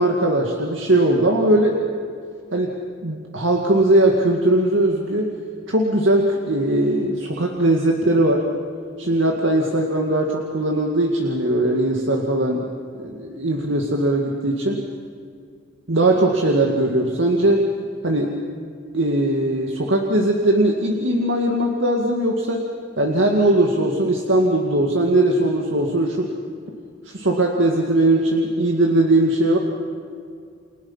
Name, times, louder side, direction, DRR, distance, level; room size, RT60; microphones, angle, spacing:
voice 1, 0.0-1.8 2.5-2.8 3.0-5.3 5.7-8.5 9.0-12.7 13.0-14.8 15.9-17.7 18.0-18.3 18.9-22.6 23.0-26.3 27.1-29.6, right 1 dB, 80° right, 1 dB, 2.2 m, -19 dB
29.5 x 28.0 x 5.7 m, 2.3 s
head